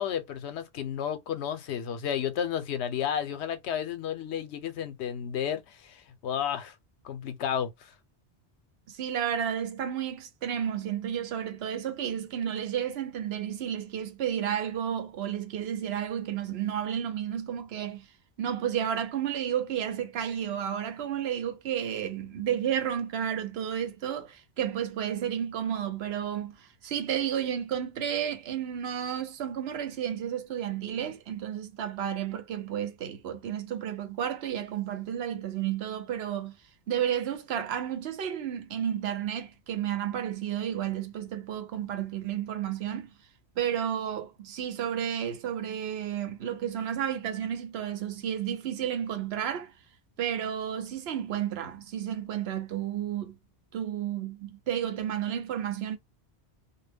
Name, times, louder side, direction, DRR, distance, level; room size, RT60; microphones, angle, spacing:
voice 1, 0.0-6.7 7.0-7.9, left 9 dB, 90° left, 0.9 m, -32 dB
voice 2, 8.9-18.1 18.4-36.6 36.9-43.1 43.6-49.7 50.2-53.4 53.7-56.0, right 9 dB, 70° right, 0.8 m, -32 dB
2.2 x 2.1 x 3.3 m
omnidirectional pair, 1.1 m